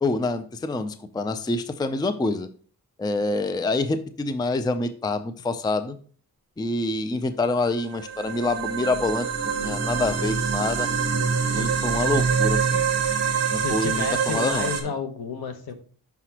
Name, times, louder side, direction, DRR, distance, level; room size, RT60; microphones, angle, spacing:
voice 1, 0.0-2.5 3.0-6.0 6.6-9.3 9.6-10.9 11.5-12.8 13.5-14.9, left 2 dB, 10° left, 11 dB, 0.4 m, -26 dB
sound 1, 7.8-14.8, right 6 dB, 40° right, 1.2 m, -25 dB
voice 2, 13.5-15.7, left 6 dB, 70° left, 7 dB, 1.1 m, -31 dB
5.9 x 5.8 x 2.9 m, 0.43 s
wide cardioid pair, 110°, 38 cm